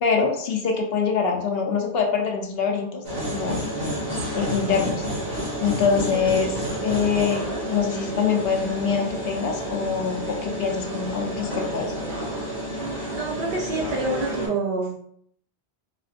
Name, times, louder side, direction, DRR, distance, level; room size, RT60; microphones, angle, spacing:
voice 1, 0.0-3.6 4.3-5.0 5.6-6.5 6.8-7.4 7.7-11.9, left 6 dB, 65° left, 1 dB, 0.8 m, -24 dB
sound 1, 3.0-14.5, equal, 85° right, 1.7 m, -30 dB
voice 2, 13.1-15.0, right 2 dB, 60° right, -1 dB, 0.6 m, -27 dB
4.1 x 2.0 x 2.4 m, 0.64 s
omnidirectional pair, 1.2 m